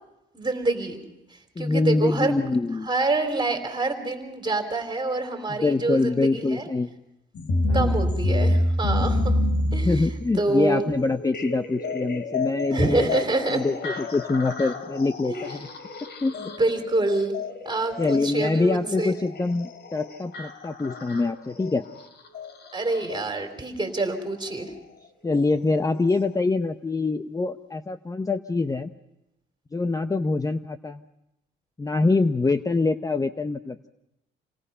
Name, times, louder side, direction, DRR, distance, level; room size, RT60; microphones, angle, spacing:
voice 1, 0.3-1.0 1.6-2.4 2.8-6.7 7.7-9.3 9.7-10.0 10.4-10.9 12.7-13.6 15.2-15.4 16.2-17.4 17.7-19.2 22.7-24.7, right 2 dB, 20° right, 5 dB, 3.6 m, -26 dB
voice 2, 1.6-2.9 5.5-6.9 7.7-8.0 9.8-15.7 16.2-16.5 18.0-21.8 25.2-28.9 29.7-31.0 31.8-33.9, left 3 dB, 15° left, 10 dB, 0.7 m, -25 dB
sound 1, 7.3-23.3 24.5-24.6 25.4-25.5 26.1-26.2, left 1 dB, 60° left, 2.8 m, -29 dB
28.0 x 18.5 x 5.6 m, 0.89 s
cardioid pair, 90°, 20 cm